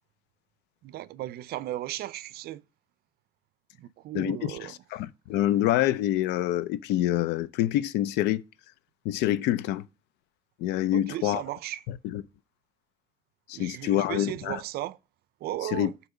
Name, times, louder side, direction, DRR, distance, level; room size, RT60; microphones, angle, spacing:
voice 1, 0.8-2.6 3.8-4.8 10.9-11.8 13.5-15.0 15.4-15.9, right 14 dB, 65° right, 0.4 m, -36 dB
voice 2, 4.1-8.4 9.0-9.8 10.6-11.4 12.1-12.2 13.5-14.6 15.6-15.9, left 13 dB, 90° left, 0.4 m, -26 dB
7.9 x 2.9 x 4.8 m
cardioid pair, 110°, 17 cm